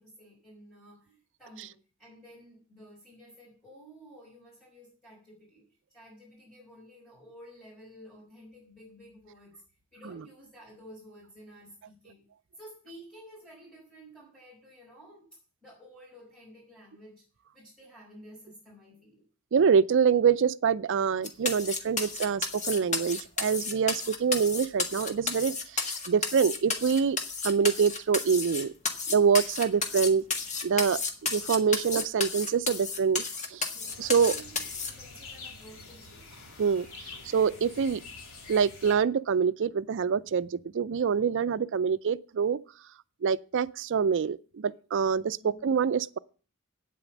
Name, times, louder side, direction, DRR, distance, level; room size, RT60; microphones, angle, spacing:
voice 1, 0.0-5.7 5.9-9.6 9.9-12.3 12.6-17.2 17.5-19.2 33.7-36.4 45.4-45.9, equal, 5° left, 5.7 m, -52 dB
voice 2, 19.5-27.2 27.4-28.7 29.1-30.2 30.6-33.2 33.5-33.7 34.0-34.3 36.6-36.9 37.3-38.0 38.5-42.6 43.2-46.2, right 6 dB, 60° right, 0.4 m, -25 dB
sound 1, 21.2-34.9, left 4 dB, 35° left, 1.6 m, -32 dB
sound 2, 33.9-38.9, left 3 dB, 75° left, 3.2 m, -46 dB
9.2 x 8.4 x 7.2 m
head